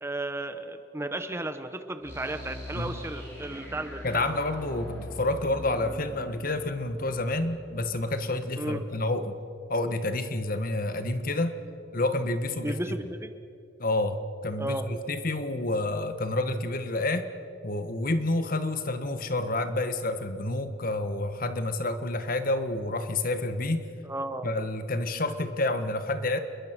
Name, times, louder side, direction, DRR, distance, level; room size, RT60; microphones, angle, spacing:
voice 1, 0.0-4.0 4.3-4.4 8.6-8.9 12.6-13.3 14.6-14.9 24.0-24.5, right 1 dB, 15° right, 9 dB, 1.0 m, -34 dB
sound 1, 2.0-8.8, left 1 dB, 15° left, 6.3 m, -43 dB
voice 2, 4.0-9.4 9.7-11.6 11.9-12.8 13.8-17.3 17.6-23.9 24.4-26.4, left 2 dB, 45° left, 9 dB, 1.4 m, -29 dB
28.5 x 22.0 x 6.1 m, 2.6 s
head